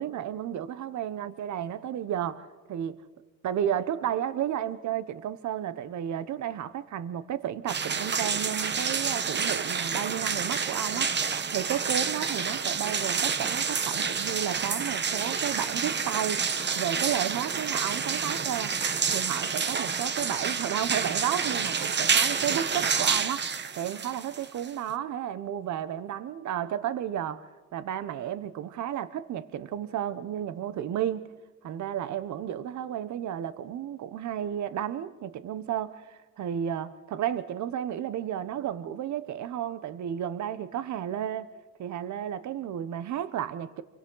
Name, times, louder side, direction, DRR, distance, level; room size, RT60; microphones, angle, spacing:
voice 1, 0.0-3.0 3.4-11.1 11.5-16.4 16.8-18.7 19.1-23.5 23.8-31.3 31.6-41.5 41.8-43.8, right 10 dB, 70° right, 0.9 m, -32 dB
sound 1, 7.7-24.9, right 6 dB, 35° right, 1.0 m, -29 dB
28.5 x 24.0 x 3.9 m
cardioid pair, 90°, 30 cm